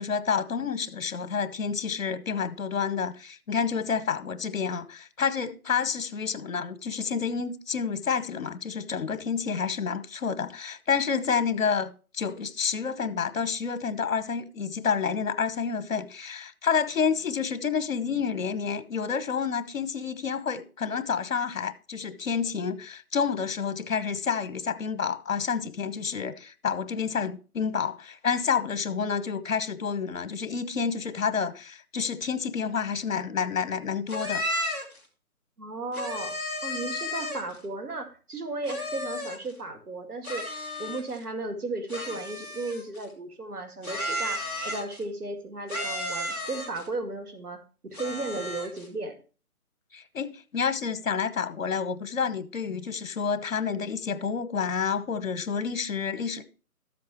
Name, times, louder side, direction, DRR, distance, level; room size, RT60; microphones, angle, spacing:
voice 1, 0.0-34.4 49.9-56.4, left 6 dB, 60° left, 1.2 m, -29 dB
sound 1, 34.1-35.0 35.9-37.6 38.6-39.5 40.2-41.2 41.9-43.0 43.8-45.0 45.7-46.9 47.9-48.9, left 1 dB, 10° right, 1.8 m, -33 dB
voice 2, 35.6-36.4 36.6-40.5 40.8-49.1, right 2 dB, 85° right, 2.2 m, -35 dB
13.5 x 7.6 x 3.0 m
hypercardioid pair, 165°, 44 cm